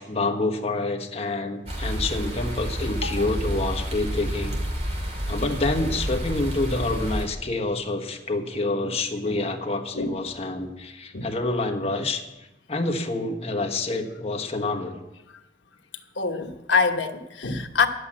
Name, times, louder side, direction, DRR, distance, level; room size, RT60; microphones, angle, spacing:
voice 1, 0.0-4.5 5.3-12.2 12.7-15.0, left 2 dB, 35° left, 1.3 m, -27 dB
sound 1, 1.7-7.3, equal, 35° right, 2.3 m, -29 dB
voice 2, 16.1-17.9, left 5 dB, 80° left, 1.2 m, -25 dB
10.5 x 8.2 x 8.7 m
head